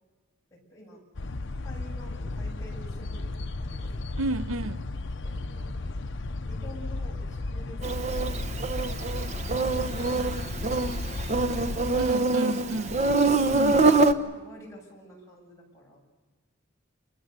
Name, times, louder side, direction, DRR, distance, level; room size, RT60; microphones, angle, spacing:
voice 1, 0.5-1.0 1.6-3.9 5.2-5.8 6.4-8.3 9.6-10.8 11.5-13.2 13.7-16.0, equal, 15° left, -3 dB, 7.7 m, -49 dB
sound 1, 1.1-12.1, left 2 dB, 60° left, 0.8 m, -34 dB
voice 2, 4.2-4.8 12.0-13.0 13.5-14.0, right 2 dB, 80° right, 14 dB, 0.7 m, -31 dB
Insect, 7.8-14.1, right 3 dB, 35° right, 1.0 m, -25 dB
27.5 x 24.5 x 6.8 m, 1.3 s
head